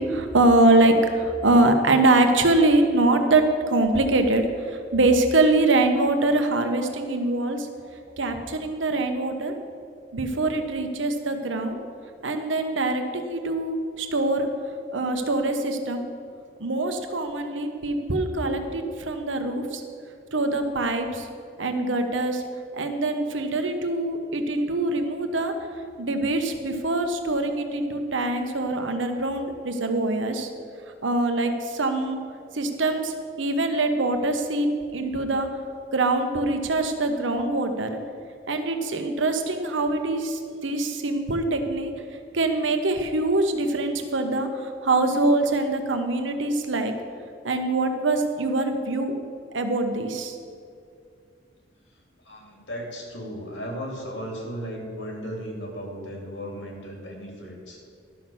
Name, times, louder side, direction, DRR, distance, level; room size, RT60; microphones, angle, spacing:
voice 1, 0.1-4.5 4.9-7.7 8.2-9.5 10.1-11.8 12.2-14.5 14.9-16.0 16.6-19.8 20.3-21.3 21.6-22.4 22.7-25.5 26.0-30.5 31.0-32.2 32.5-34.7 34.9-35.5 35.9-38.0 38.5-41.9 42.3-46.9 47.4-49.1 49.5-50.4, right 2 dB, 85° right, 6 dB, 1.0 m, -23 dB
voice 2, 52.2-57.8, equal, 80° left, 0 dB, 2.8 m, -35 dB
12.0 x 6.1 x 7.0 m, 2.3 s
head